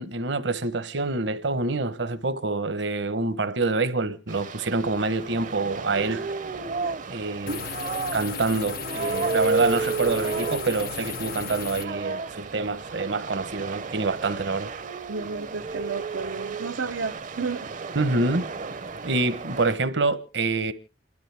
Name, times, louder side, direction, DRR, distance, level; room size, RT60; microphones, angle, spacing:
voice 1, 0.0-6.2 7.1-7.7 8.1-14.7 17.9-18.5 19.0-20.7, right 3 dB, 70° right, 1.1 m, -26 dB
sound 1, 4.3-19.7, right 4 dB, 45° right, 0.7 m, -33 dB
sound 2, 7.5-11.9, left 7 dB, 55° left, 0.7 m, -35 dB
voice 2, 15.1-17.7, right 4 dB, 90° right, 0.7 m, -32 dB
28.5 x 12.0 x 3.5 m
head